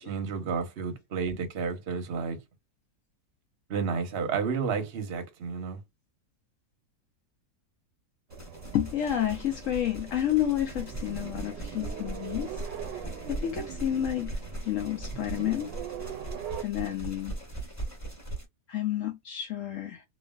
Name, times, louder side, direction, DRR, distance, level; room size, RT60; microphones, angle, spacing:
voice 1, 0.0-2.4 3.7-5.8, right 5 dB, 45° right, 0.9 m, -31 dB
sound 1, 8.3-18.4, right 1 dB, 10° left, 1.2 m, -39 dB
sound 2, 8.3-16.6, right 9 dB, 80° right, 1.3 m, -42 dB
voice 2, 8.7-12.6 13.3-14.3 14.6-15.8 16.6-17.4 18.7-20.0, left 11 dB, 75° left, 0.7 m, -30 dB
3.0 x 2.4 x 2.3 m
omnidirectional pair, 1.9 m